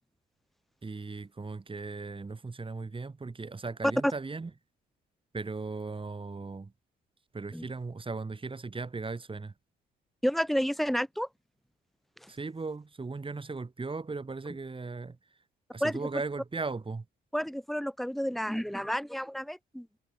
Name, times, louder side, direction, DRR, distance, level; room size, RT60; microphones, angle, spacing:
voice 1, 0.8-4.5 5.3-6.7 7.3-9.5 12.3-15.2 15.7-17.0, right 3 dB, 25° right, 7.5 m, -37 dB
voice 2, 10.2-11.3 15.8-16.1 17.3-19.9, equal, ahead, 3.1 m, -30 dB
cardioid pair, 90°, 20 cm